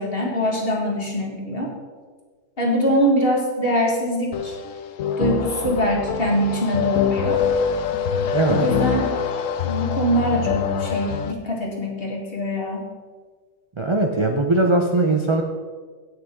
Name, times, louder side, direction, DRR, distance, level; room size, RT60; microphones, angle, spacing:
voice 1, 0.0-1.7 2.6-4.6 5.2-7.4 8.6-9.2 9.6-12.9, equal, 40° left, -1 dB, 2.1 m, -23 dB
sound 1, 4.3-11.3, left 7 dB, 65° left, 0.9 m, -24 dB
voice 2, 8.3-8.7 13.8-15.4, right 2 dB, 35° right, 2 dB, 0.4 m, -20 dB
17.0 x 6.2 x 3.8 m, 1.5 s
omnidirectional pair, 1.6 m